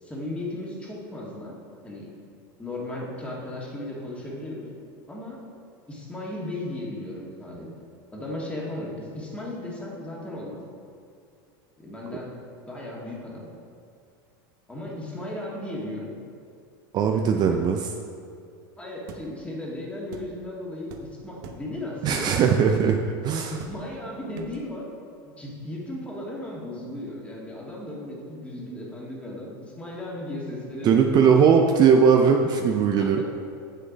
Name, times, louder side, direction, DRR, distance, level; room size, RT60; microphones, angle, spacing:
voice 1, 0.0-1.5 1.8-2.1 2.6-4.7 5.1-5.4 5.9-7.7 8.1-10.6 11.8-12.4 12.7-13.5 14.7-16.1 17.1-18.1 18.8-23.0 23.5-24.9 25.2-31.5 33.0-33.2, left 1 dB, 10° left, -4 dB, 1.9 m, -36 dB
voice 2, 16.9-17.8 22.0-23.0 23.2-23.6 30.8-33.2, right 6 dB, 35° right, 3 dB, 0.5 m, -19 dB
sound 1, 19.1-19.3 20.1-20.3 20.9-21.1 21.4-21.7 22.1-22.3 22.7-23.0 23.6-23.9 24.3-24.6, right 6 dB, 65° right, 0.9 m, -42 dB
7.6 x 6.7 x 5.2 m, 2.5 s
supercardioid pair, 130°, 12 cm